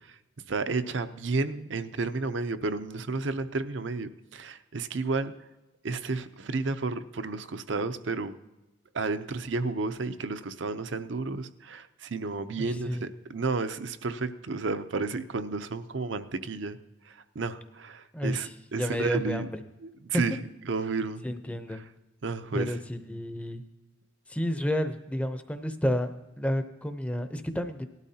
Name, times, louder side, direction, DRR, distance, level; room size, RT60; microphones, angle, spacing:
voice 1, 0.5-5.3 5.8-8.3 8.9-16.8 17.1-19.5 19.8-20.4 20.7-21.5 22.2-22.8, right 3 dB, 65° right, 11 dB, 0.6 m, -32 dB
voice 2, 12.6-13.0 18.1-18.5 18.8-19.5 20.1-20.2 21.2-21.8 22.5-23.6 24.3-26.1 26.4-27.9, equal, 5° left, 8 dB, 0.6 m, -30 dB
18.5 x 12.0 x 2.8 m, 1.0 s
head